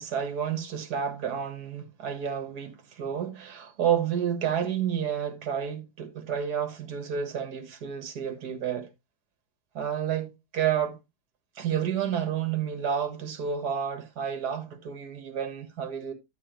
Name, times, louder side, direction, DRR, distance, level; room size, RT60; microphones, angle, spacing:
voice 1, 0.0-8.9 9.7-11.0 11.6-16.1, right 8 dB, 65° right, 2.0 m, -30 dB
11.0 x 7.1 x 3.0 m
omnidirectional pair, 1.9 m